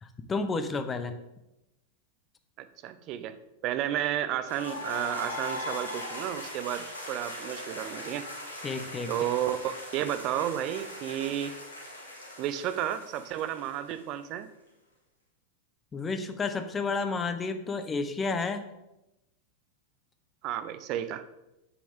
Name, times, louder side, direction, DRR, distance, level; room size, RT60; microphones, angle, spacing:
voice 1, 0.0-1.2 8.6-9.1 15.9-18.7, left 4 dB, 20° left, 9 dB, 0.7 m, -31 dB
voice 2, 2.6-3.4 3.6-8.3 9.1-11.5 12.4-14.5 20.4-21.2, right 11 dB, 40° right, 12 dB, 0.5 m, -32 dB
sound 1, 4.5-14.2, left 1 dB, 75° left, 1.9 m, -40 dB
7.7 x 6.9 x 3.4 m, 0.93 s
figure-of-eight pair, 90°, 0 cm